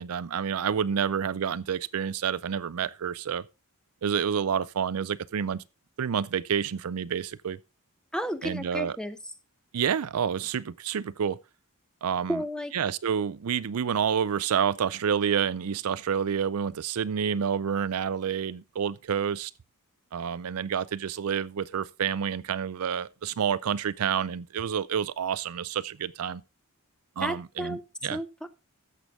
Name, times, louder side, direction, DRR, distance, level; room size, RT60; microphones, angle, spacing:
voice 1, 0.0-3.4 4.0-5.6 6.0-7.6 8.4-8.9 9.7-11.4 12.0-12.4 12.7-19.5 20.1-26.4 27.2-28.2, right 7 dB, 75° right, 0.5 m, -29 dB
voice 2, 8.1-9.2 12.3-12.7 27.2-27.8 28.1-28.5, equal, 5° left, 0.8 m, -32 dB
14.5 x 6.7 x 3.6 m
head